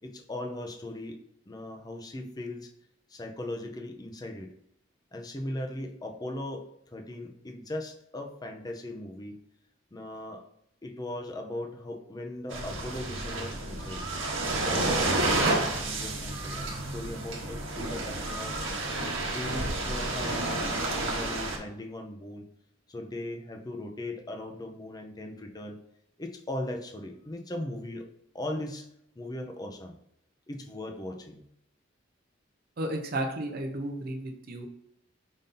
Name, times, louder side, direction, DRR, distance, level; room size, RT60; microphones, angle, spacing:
voice 1, 0.0-1.2 1.5-2.7 3.1-4.5 5.1-9.4 9.9-10.4 10.8-14.1 14.6-18.7 19.3-22.5 22.9-25.8 26.2-28.1 28.3-28.9 29.2-29.9 30.5-31.5, left 1 dB, 20° left, 3 dB, 0.5 m, -38 dB
sound 1, 12.5-21.6, right 2 dB, 70° right, 1.1 m, -30 dB
voice 2, 32.8-34.7, right 1 dB, 50° right, 3 dB, 0.6 m, -33 dB
5.3 x 2.6 x 3.7 m, 0.77 s
head